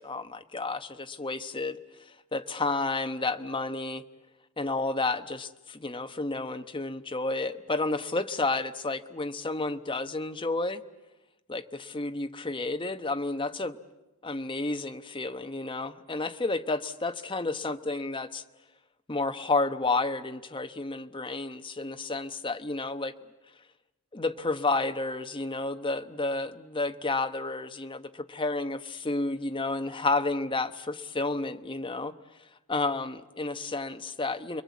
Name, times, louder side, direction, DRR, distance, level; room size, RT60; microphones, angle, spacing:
voice 1, 0.0-1.8 2.3-4.0 4.6-10.8 11.5-13.8 14.2-18.4 19.1-23.1 24.1-32.1 32.7-34.6, left 3 dB, 20° left, 8 dB, 1.0 m, -31 dB
30.0 x 22.5 x 8.4 m, 1.0 s
head